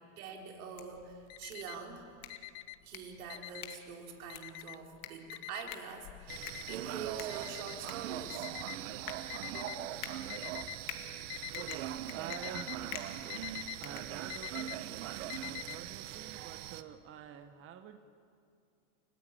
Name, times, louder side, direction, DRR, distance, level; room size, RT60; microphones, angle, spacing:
voice 1, 0.2-2.1 2.8-8.5 9.5-10.4 11.7-11.9, right 6 dB, 75° right, 2 dB, 4.0 m, -45 dB
sound 1, 0.5-14.7, left 11 dB, 75° left, 2.5 m, -50 dB
Alarm, 1.0-1.9 2.3-3.9 4.3-4.9 5.3-9.8 10.3-10.9 11.2-11.8 12.1-15.8, left 18 dB, 35° left, 0.5 m, -45 dB
sound 2, 6.3-16.8, right 13 dB, 55° right, 1.2 m, -41 dB
voice 2, 12.1-12.9 13.8-14.9 15.4-18.0, right 9 dB, 30° right, 8 dB, 1.1 m, -48 dB
30.0 x 13.5 x 8.8 m, 2.4 s
supercardioid pair, 130°, 44 cm